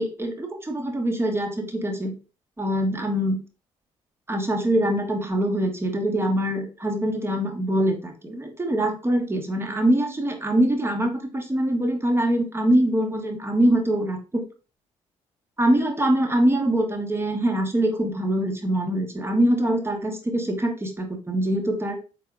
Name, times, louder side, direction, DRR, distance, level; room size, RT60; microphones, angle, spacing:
voice 1, 0.0-2.1 2.6-3.4 4.3-14.4 15.6-22.0, right 1 dB, 15° right, 3 dB, 1.1 m, -23 dB
4.6 x 3.9 x 2.3 m, 0.34 s
figure-of-eight pair, 45°, 16 cm